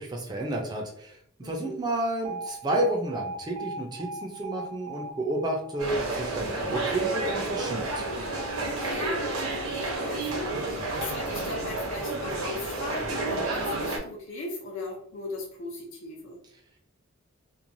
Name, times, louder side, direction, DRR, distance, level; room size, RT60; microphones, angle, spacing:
voice 1, 0.0-8.0, right 1 dB, 20° right, 1 dB, 0.4 m, -31 dB
voice 2, 1.4-1.8 8.6-9.7 10.0-16.4, left 2 dB, 65° left, -2 dB, 0.6 m, -38 dB
Alarm, 2.2-10.3, right 2 dB, 65° right, 0.6 m, -41 dB
sound 1, 5.8-14.0, right 2 dB, 85° right, 0.9 m, -30 dB
3.0 x 2.2 x 2.6 m, 0.64 s
head